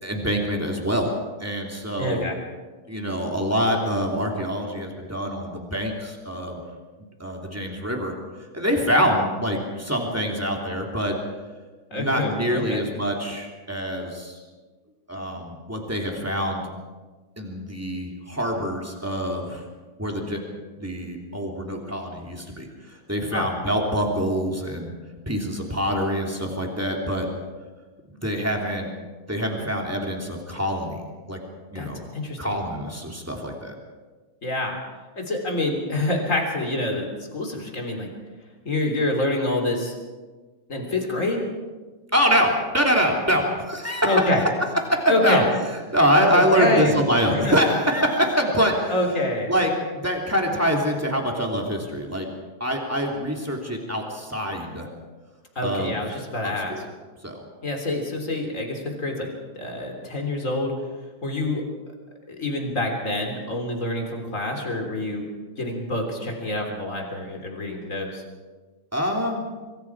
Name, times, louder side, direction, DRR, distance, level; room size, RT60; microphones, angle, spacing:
voice 1, 0.0-1.1 1.4-2.3 2.9-6.6 7.2-8.1 8.5-11.1 11.9-14.4 15.1-16.6 17.3-19.6 20.0-24.9 25.2-27.3 28.2-28.9 29.3-31.0 31.3-31.4 31.7-32.0 32.4-33.7 42.1-44.4 44.9-45.4 45.9-48.9 49.5-52.3 52.6-54.9 55.6-56.0 56.4-56.8 57.2-57.4 68.9-69.4, equal, 5° right, 0 dB, 1.3 m, -25 dB
voice 2, 2.0-2.3 11.9-12.9 23.3-23.5 31.7-31.9 32.1-32.6 34.4-34.8 35.2-37.1 37.3-38.1 38.6-40.0 40.7-41.4 44.0-44.4 45.1-45.5 46.2-47.0 47.3-47.5 48.9-49.5 55.5-56.7 57.6-60.7 61.2-61.6 62.3-65.2 65.6-68.2, left 1 dB, 20° left, 2 dB, 2.8 m, -26 dB
26.0 x 23.5 x 4.8 m, 1.3 s
omnidirectional pair, 5.5 m